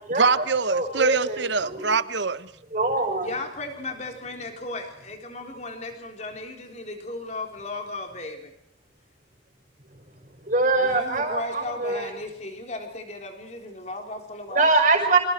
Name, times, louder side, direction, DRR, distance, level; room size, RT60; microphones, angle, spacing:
voice 1, 0.1-2.5, right 5 dB, 70° right, 1.0 m, -24 dB
voice 2, 0.7-1.8 2.7-3.3 10.5-12.1 14.5-15.2, right 3 dB, 40° right, 5.7 m, -23 dB
voice 3, 3.2-8.5 10.7-14.7, left 2 dB, 35° left, 3.8 m, -35 dB
28.5 x 26.0 x 4.6 m
head